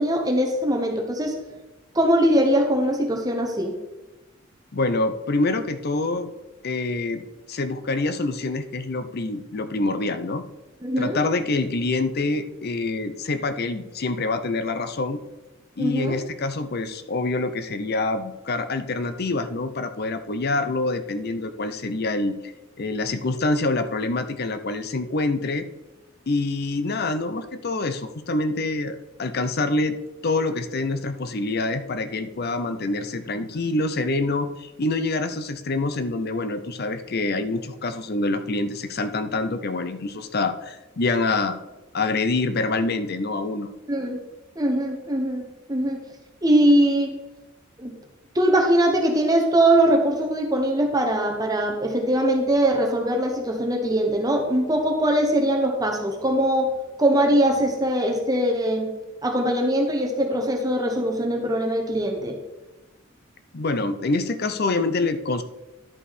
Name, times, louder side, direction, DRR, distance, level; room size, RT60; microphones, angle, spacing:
voice 1, 0.0-1.4 1.9-3.7 10.8-11.2 15.8-16.2 43.9-44.2 44.6-46.0 46.4-47.2 47.8-47.9 48.3-56.7 57.0-58.9 59.2-62.4, right 1 dB, 20° right, 2 dB, 1.0 m, -21 dB
voice 2, 4.7-6.3 6.6-10.4 11.0-15.2 15.8-22.5 22.8-25.7 26.3-30.0 30.2-41.6 41.9-43.7 63.5-65.4, left 2 dB, 50° left, 10 dB, 0.7 m, -26 dB
11.0 x 5.6 x 4.2 m, 1.1 s
head